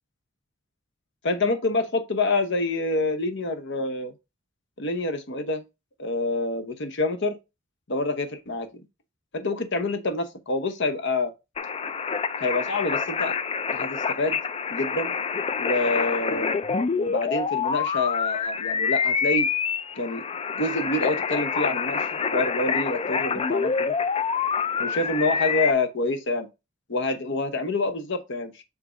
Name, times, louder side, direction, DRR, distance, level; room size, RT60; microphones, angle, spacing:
voice 1, 1.2-4.1 4.8-5.6 6.0-7.4 7.9-8.8 9.3-11.3 12.4-13.3 13.7-14.4 14.7-15.1 15.6-16.6 16.9-19.5 20.0-20.2 20.5-24.0 24.8-26.5 26.9-28.6, left 2 dB, 60° left, 1.0 m, -27 dB
sound 1, 11.6-25.7, left 6 dB, 30° left, 0.3 m, -27 dB
7.2 x 2.8 x 5.0 m
head